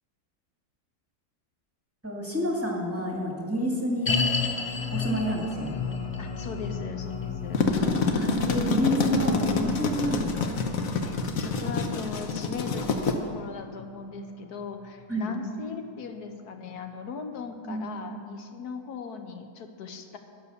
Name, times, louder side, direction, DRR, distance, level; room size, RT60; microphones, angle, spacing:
voice 1, 2.0-4.2 4.9-5.7 8.1-10.5 15.1-15.3 17.7-18.1, equal, 10° right, -1 dB, 2.0 m, -29 dB
sound 1, 4.1-15.3 15.6-15.7 16.3-16.4, left 5 dB, 40° left, 0.5 m, -34 dB
voice 2, 6.2-7.6 11.0-20.2, left 5 dB, 85° left, 6 dB, 1.5 m, -39 dB
sound 2, 7.3-13.1, left 4 dB, 65° left, 1.4 m, -27 dB
12.0 x 9.5 x 6.8 m, 2.3 s
omnidirectional pair, 1.6 m